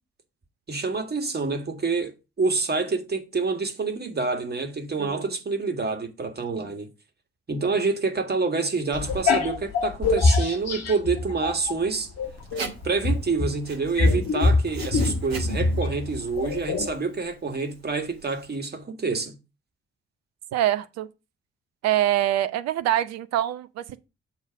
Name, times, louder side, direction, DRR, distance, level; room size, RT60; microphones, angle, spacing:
voice 1, 0.7-6.9 7.5-12.1 12.8-19.4, right 4 dB, 35° right, 1.9 m, -27 dB
voice 2, 5.0-5.3 6.6-6.7 20.5-21.1 21.8-24.0, right 12 dB, 55° right, 0.7 m, -25 dB
sound 1, 8.9-11.8 12.2-16.9, left 3 dB, 55° left, 1.5 m, -24 dB
Writing, 12.2-18.6, right 4 dB, 85° right, 0.8 m, -42 dB
7.2 x 4.1 x 5.0 m
figure-of-eight pair, 40°, 30 cm